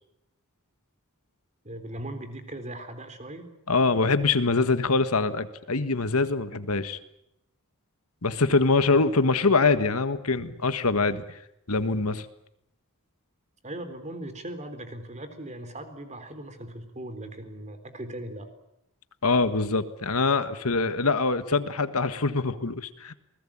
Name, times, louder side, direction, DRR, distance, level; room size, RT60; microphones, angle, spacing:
voice 1, 1.6-3.5 8.9-9.0 13.6-18.5, right 1 dB, 30° right, 9 dB, 3.8 m, -39 dB
voice 2, 3.7-7.0 8.2-11.4 11.7-12.2 19.2-23.1, left 3 dB, 75° left, 11 dB, 1.6 m, -24 dB
28.0 x 20.5 x 8.8 m, 0.81 s
head